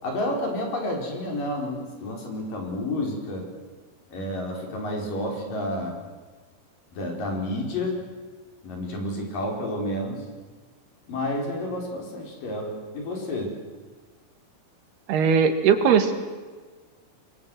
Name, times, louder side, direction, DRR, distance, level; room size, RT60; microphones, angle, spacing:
voice 1, 0.0-3.5 4.1-6.0 6.9-8.0 8.6-10.2 11.1-13.6, left 1 dB, 60° left, 2 dB, 6.3 m, -30 dB
voice 2, 15.1-16.1, right 6 dB, 85° right, 8 dB, 4.0 m, -19 dB
27.5 x 22.0 x 8.0 m, 1.4 s
omnidirectional pair, 4.5 m